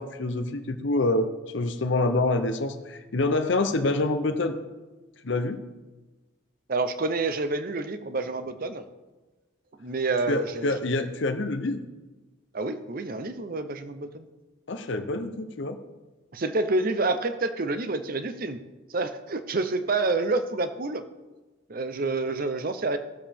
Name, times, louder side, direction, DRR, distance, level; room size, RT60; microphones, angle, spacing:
voice 1, 0.0-4.6 5.2-5.6 10.3-11.8 14.7-15.8, left 2 dB, 60° left, 7 dB, 0.7 m, -26 dB
voice 2, 6.7-8.8 9.8-10.7 12.5-14.3 16.3-18.6 18.9-21.0 21.7-23.0, right 3 dB, 45° right, 10 dB, 0.7 m, -28 dB
18.0 x 7.2 x 3.5 m, 1.2 s
head